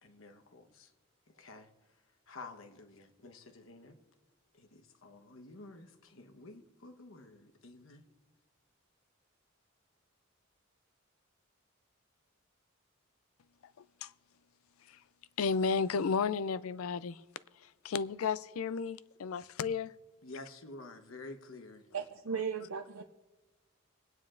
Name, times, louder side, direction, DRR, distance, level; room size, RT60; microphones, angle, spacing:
voice 1, 0.0-0.9 1.3-4.0 4.5-8.1 20.2-21.9, left 2 dB, 70° left, 1.1 m, -51 dB
voice 2, 15.4-17.2 17.8-19.9 22.3-22.4, left 5 dB, 90° left, 0.4 m, -33 dB
voice 3, 21.9-23.0, right 6 dB, 85° right, 0.5 m, -36 dB
25.0 x 9.3 x 2.5 m
head